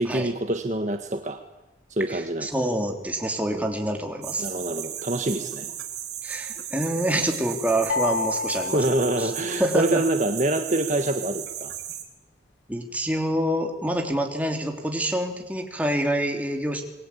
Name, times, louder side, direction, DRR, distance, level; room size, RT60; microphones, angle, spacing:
voice 1, 0.0-1.4 1.9-2.7 3.5-3.7 4.4-5.7 8.7-11.7, right 1 dB, 40° right, 6 dB, 1.6 m, -26 dB
voice 2, 2.1-4.5 6.2-9.3 9.6-10.0 12.7-16.8, right 1 dB, 10° right, 2 dB, 3.4 m, -27 dB
sound 1, 4.2-12.0, right 10 dB, 60° right, 3.9 m, -35 dB
sound 2, 7.9-10.0, left 4 dB, 80° left, 1.0 m, -30 dB
28.5 x 22.5 x 8.7 m, 0.97 s
head